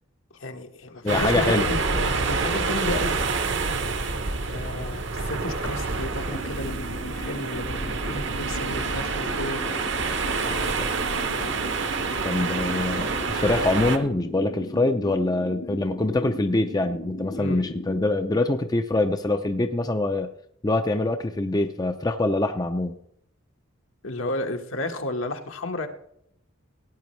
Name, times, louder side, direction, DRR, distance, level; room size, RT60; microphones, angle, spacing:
voice 1, 0.4-3.2 4.5-9.6 10.3-10.9 17.4-17.6 24.0-25.9, left 2 dB, 75° left, 5 dB, 1.3 m, -33 dB
voice 2, 1.0-1.7 10.8-10.9 12.2-20.3 20.6-22.9, left 2 dB, 20° left, 7 dB, 0.5 m, -24 dB
sound 1, 1.1-14.0, right 4 dB, 55° right, 1.0 m, -27 dB
sound 2, 6.2-18.1, equal, 55° left, 1.2 m, -37 dB
17.0 x 9.5 x 3.2 m, 0.71 s
head